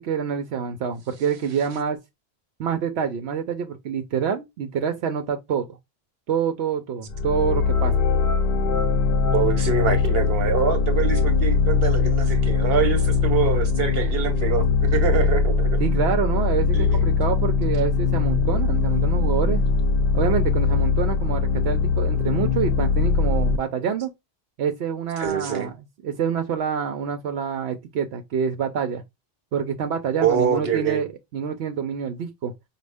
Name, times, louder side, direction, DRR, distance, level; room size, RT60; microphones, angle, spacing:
voice 1, 0.0-2.0 2.6-5.7 6.3-7.9 15.8-19.6 20.1-24.1 24.6-25.7 26.0-29.0 29.5-31.1 31.3-32.5, right 7 dB, 85° right, 0.9 m, -26 dB
sound 1, 7.1-23.6, left 4 dB, 60° left, 0.7 m, -21 dB
voice 2, 9.3-15.8 16.7-17.0 25.2-25.7 30.2-31.1, right 7 dB, 70° right, 1.2 m, -25 dB
5.1 x 2.3 x 3.4 m
omnidirectional pair, 1.1 m